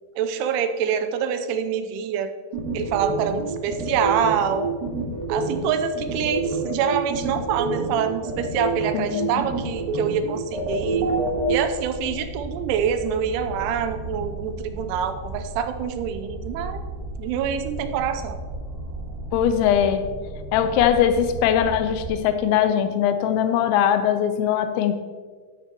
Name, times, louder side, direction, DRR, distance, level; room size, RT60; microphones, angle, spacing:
voice 1, 0.2-2.3 2.7-4.7 5.3-11.1 11.5-16.9 17.2-18.4, right 8 dB, 85° right, 9 dB, 3.1 m, -26 dB
sound 1, 2.5-11.5, right 2 dB, 65° right, 2.6 m, -27 dB
voice 2, 8.9-9.3 19.3-20.1 20.5-24.9, left 9 dB, 85° left, 9 dB, 2.8 m, -21 dB
sound 2, 10.5-22.1, right 2 dB, 30° right, 2.0 m, -35 dB
13.0 x 9.0 x 2.9 m, 1.5 s
omnidirectional pair, 5.4 m